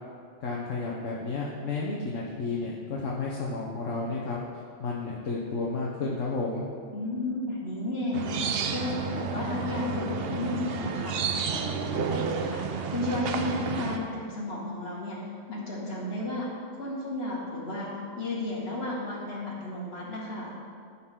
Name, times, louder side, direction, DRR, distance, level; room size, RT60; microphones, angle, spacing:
voice 1, 0.4-4.4 4.8-6.7, left 3 dB, 60° left, -3 dB, 1.2 m, -32 dB
voice 2, 6.9-11.2 11.5-15.2 15.5-17.9 18.2-20.5, left 2 dB, 45° left, -5 dB, 2.2 m, -33 dB
sound 1, 8.1-14.0, right 6 dB, 60° right, 0.7 m, -31 dB
14.0 x 5.7 x 3.7 m, 2.2 s
omnidirectional pair, 1.5 m